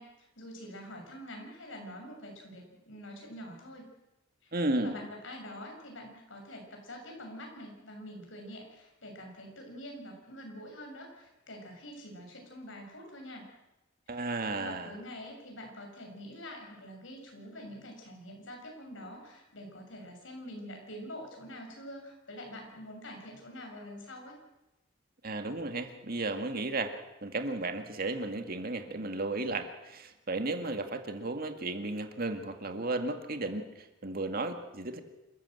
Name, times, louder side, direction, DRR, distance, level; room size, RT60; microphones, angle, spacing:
voice 1, 0.0-3.9 4.4-13.5 14.1-24.4, equal, 85° left, 2 dB, 6.8 m, -46 dB
voice 2, 4.5-5.0 14.1-14.9 25.2-27.0 27.2-35.0, right 2 dB, 50° right, 7 dB, 2.0 m, -34 dB
27.5 x 14.0 x 7.9 m, 0.96 s
head